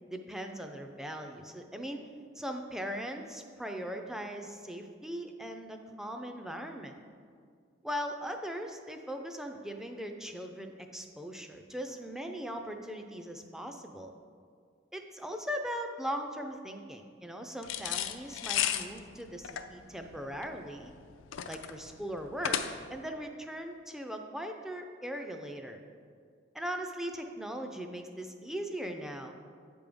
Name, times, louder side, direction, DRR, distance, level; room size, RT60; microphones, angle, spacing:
voice 1, 0.1-2.1 2.4-7.0 7.8-14.1 14.9-20.9 21.5-22.6 22.9-25.8 26.5-29.3, equal, 5° right, 4 dB, 0.4 m, -39 dB
sound 1, 17.6-23.1, left 10 dB, 85° left, 0.4 m, -34 dB
8.4 x 3.5 x 5.1 m, 2.1 s
head